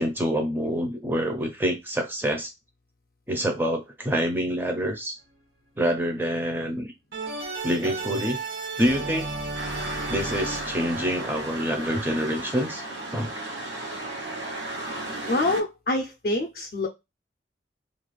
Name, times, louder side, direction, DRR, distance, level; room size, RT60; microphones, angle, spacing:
voice 1, 0.0-2.5 3.3-5.2 5.8-6.9 7.6-8.4 8.8-9.3 10.1-12.8 13.1-13.3, equal, 10° right, 3 dB, 0.5 m, -26 dB
sound 1, 7.1-12.1, right 3 dB, 65° right, 1.3 m, -34 dB
sound 2, 9.5-15.6, right 1 dB, 80° right, 0.7 m, -34 dB
voice 2, 15.3-16.9, left 2 dB, 50° left, 2 dB, 0.4 m, -26 dB
2.4 x 2.3 x 3.0 m, 0.23 s
head